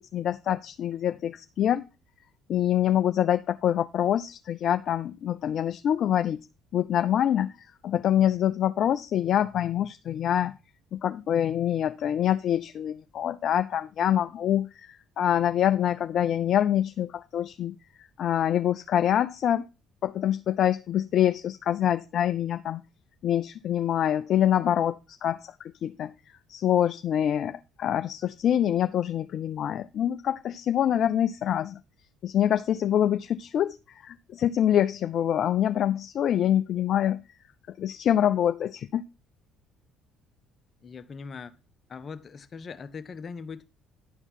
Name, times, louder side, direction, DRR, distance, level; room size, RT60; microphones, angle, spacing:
voice 1, 0.1-1.8 2.5-6.4 6.7-10.5 10.9-19.7 20.0-22.8 23.2-25.6 25.8-31.8 32.2-37.2 37.8-39.0, left 10 dB, 60° left, 0.4 m, -25 dB
voice 2, 40.8-41.5 41.9-43.7, left 5 dB, 45° left, 0.9 m, -40 dB
11.0 x 4.5 x 5.4 m
hypercardioid pair, 60°, 0 cm